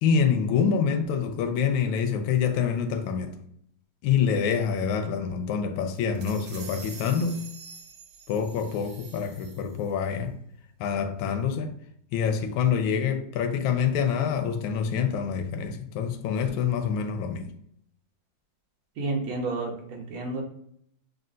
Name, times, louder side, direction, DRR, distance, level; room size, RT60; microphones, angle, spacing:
voice 1, 0.0-3.4 4.0-7.4 8.3-10.4 10.8-11.7 12.1-17.5, left 7 dB, 80° left, 1.4 m, -26 dB
sound 1, 5.9-9.9, right 4 dB, 60° right, 0.9 m, -46 dB
voice 2, 19.0-20.4, right 3 dB, 80° right, 1.8 m, -30 dB
6.5 x 2.4 x 2.5 m
omnidirectional pair, 2.2 m